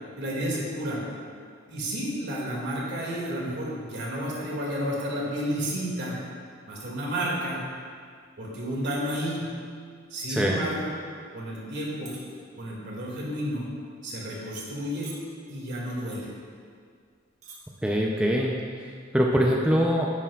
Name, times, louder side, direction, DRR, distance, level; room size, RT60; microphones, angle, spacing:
voice 1, 0.2-1.0 1.7-6.2 6.7-7.6 8.4-9.5 10.1-10.9 11.3-12.1 12.6-13.7 14.0-15.1 15.5-16.3, equal, 60° right, -4 dB, 2.2 m, -31 dB
voice 2, 10.3-10.7 17.8-20.1, equal, 5° right, -2 dB, 0.5 m, -24 dB
sound 1, 12.0-12.3 12.7-13.0 13.6-13.8 14.5-14.8 15.0-15.5 16.3-16.4 16.6-16.7 17.3-17.6 17.9-18.2, right 6 dB, 35° right, 1.6 m, -45 dB
10.5 x 9.1 x 2.4 m, 2.1 s
head